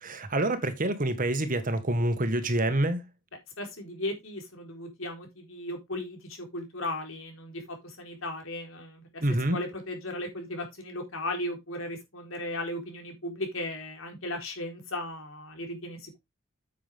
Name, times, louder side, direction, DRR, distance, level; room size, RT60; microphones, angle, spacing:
voice 1, 0.0-3.1 9.2-9.6, right 1 dB, 40° right, 1.6 m, -27 dB
voice 2, 3.6-16.2, left 1 dB, 80° left, 4.2 m, -36 dB
9.3 x 7.6 x 3.6 m
head